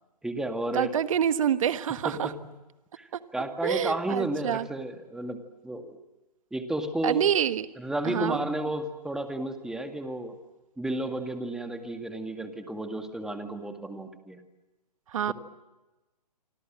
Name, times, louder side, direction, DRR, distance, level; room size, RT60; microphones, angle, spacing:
voice 1, 0.2-0.9 2.0-2.4 3.0-6.0 6.5-7.2 7.8-10.4 10.8-14.4 15.3-15.4, right 1 dB, 5° right, 6 dB, 2.1 m, -32 dB
voice 2, 0.7-2.3 3.6-4.7 7.0-7.7 8.0-8.4 15.1-15.3, right 9 dB, 55° right, 12 dB, 1.4 m, -26 dB
27.0 x 26.0 x 7.6 m, 1.1 s
hypercardioid pair, 135°, 21 cm